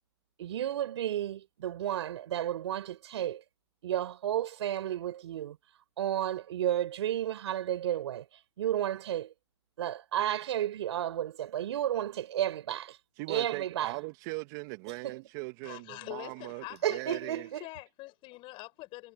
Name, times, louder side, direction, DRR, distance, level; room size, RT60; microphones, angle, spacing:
voice 1, 0.4-3.4 3.8-5.6 6.0-8.3 8.6-9.3 9.8-13.0 13.3-14.0 15.0-15.2 16.8-17.6, right 11 dB, 65° right, 4.2 m, -32 dB
voice 2, 13.2-17.5, right 26 dB, 40° right, 1.7 m, -40 dB
voice 3, 15.6-19.1, left 21 dB, 35° left, 5.9 m, -45 dB
hypercardioid pair, 130°, 15 cm